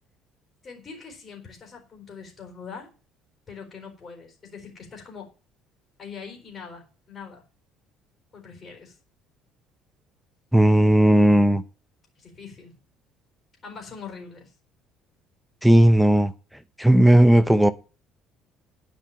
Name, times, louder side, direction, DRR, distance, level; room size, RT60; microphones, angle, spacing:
voice 1, 0.6-2.9 3.5-5.3 6.0-7.4 8.3-9.0 12.2-12.8 13.6-14.5, left 5 dB, 30° left, 3.9 m, -42 dB
voice 2, 10.5-11.6 15.6-16.3 16.8-17.7, right 1 dB, ahead, 0.7 m, -16 dB
10.5 x 5.4 x 8.5 m
cardioid pair, 120°, 0 cm